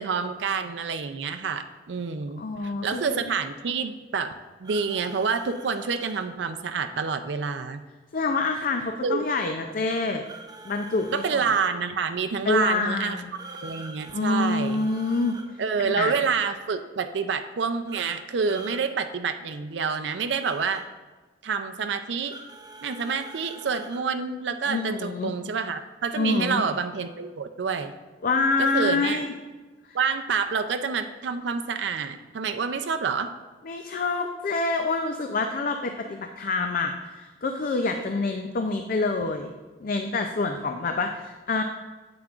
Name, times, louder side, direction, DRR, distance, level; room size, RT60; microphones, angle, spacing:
voice 1, 0.0-7.8 9.0-9.2 11.1-13.2 13.6-14.9 15.6-20.8 21.4-22.4 22.8-27.9 28.6-29.2 29.9-33.3, right 5 dB, 75° right, 8 dB, 0.4 m, -28 dB
voice 2, 2.4-3.2 8.1-10.2 10.6-11.4 12.5-13.3 14.1-15.4 15.8-16.1 24.7-25.3 26.2-26.6 28.2-29.3 29.9-30.0 33.6-39.5 39.8-41.6, left 3 dB, 50° left, 5 dB, 0.4 m, -26 dB
sound 1, 4.6-6.2 10.2-11.7 13.3-15.5 17.9-18.8 20.4-20.8 22.3-24.0, right 3 dB, 20° right, 0.6 m, -44 dB
9.5 x 7.8 x 2.4 m, 1.3 s
head